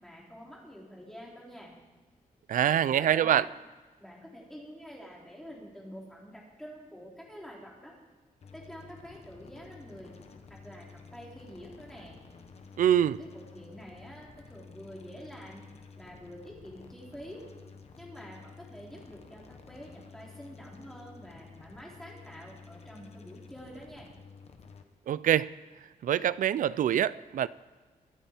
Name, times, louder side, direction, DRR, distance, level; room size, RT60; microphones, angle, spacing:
voice 1, 0.0-1.7 2.7-3.5 4.0-7.9 8.5-10.1 10.5-12.1 13.1-15.6 16.0-17.4 18.0-24.1, equal, 5° left, -3 dB, 3.3 m, -47 dB
voice 2, 2.5-3.5 12.8-13.2 25.1-25.5 26.0-27.5, right 10 dB, 65° right, 18 dB, 0.4 m, -25 dB
sound 1, 8.4-24.8, left 5 dB, 45° left, 1.1 m, -52 dB
23.5 x 9.0 x 4.4 m, 1.4 s
wide cardioid pair, 150°, 14 cm